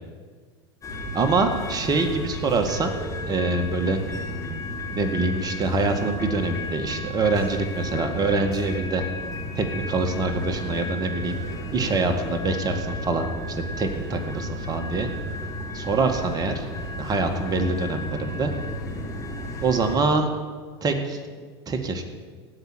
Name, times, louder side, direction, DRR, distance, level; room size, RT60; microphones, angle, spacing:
sound 1, 0.8-20.0, left 1 dB, 20° left, 3.9 m, -33 dB
voice 1, 1.1-2.9 3.3-4.0 4.9-9.0 9.6-11.4 11.7-15.1 15.7-16.7 16.9-18.5 19.6-20.3 20.8-22.0, right 3 dB, 30° right, 5 dB, 1.9 m, -25 dB
16.5 x 5.8 x 9.1 m, 1.6 s
hypercardioid pair, 100°, 14 cm